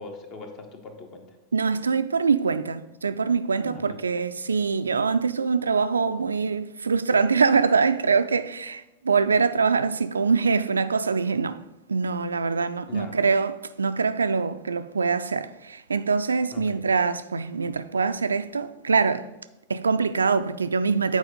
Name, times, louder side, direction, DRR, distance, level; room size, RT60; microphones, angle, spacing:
voice 1, 0.0-1.4 3.6-4.0 12.9-13.2 16.5-16.8, left 3 dB, 40° left, 1.3 m, -41 dB
voice 2, 1.5-11.6 11.9-19.3 19.7-21.2, right 5 dB, 75° right, 0.3 m, -24 dB
8.0 x 4.7 x 5.1 m
figure-of-eight pair, 90°, 0 cm